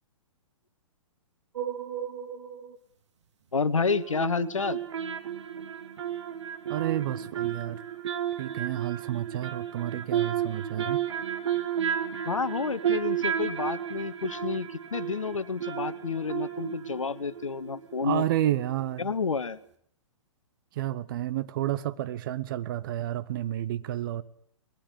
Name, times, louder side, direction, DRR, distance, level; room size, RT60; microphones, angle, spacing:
sound 1, 1.6-2.8 3.9-18.4 18.7-18.8, right 9 dB, 55° right, 1.8 m, -33 dB
voice 1, 3.5-4.8 12.2-18.2 19.0-19.6, left 5 dB, 70° left, 16 dB, 1.0 m, -30 dB
voice 2, 6.7-7.8 8.4-11.0 18.0-19.1 20.7-24.2, right 12 dB, 40° right, 14 dB, 0.9 m, -30 dB
20.5 x 12.5 x 9.9 m, 0.66 s
figure-of-eight pair, 115°, 17 cm